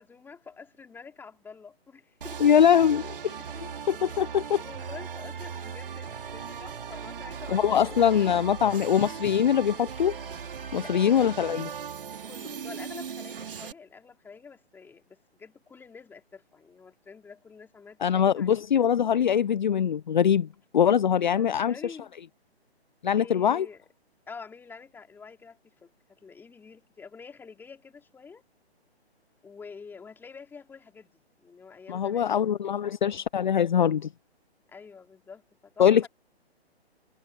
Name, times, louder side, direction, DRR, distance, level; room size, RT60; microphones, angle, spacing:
voice 1, 0.0-2.4 3.3-3.4 4.6-8.1 8.4-8.6 10.8-11.7 12.2-18.6 21.3-22.1 23.2-23.8 24.3-28.4 29.4-32.5 32.8-32.9 34.7-36.1, left 5 dB, 5° left, 3.5 m, -47 dB
sound 1, 2.2-13.7, right 7 dB, 55° right, 3.8 m, -38 dB
voice 2, 2.4-3.3 3.9-4.6 7.5-10.1 10.7-11.6 18.0-20.5 20.7-21.7 23.0-23.7 31.9-34.1 35.8-36.1, left 8 dB, 45° left, 0.8 m, -22 dB
figure-of-eight pair, 140°, 33 cm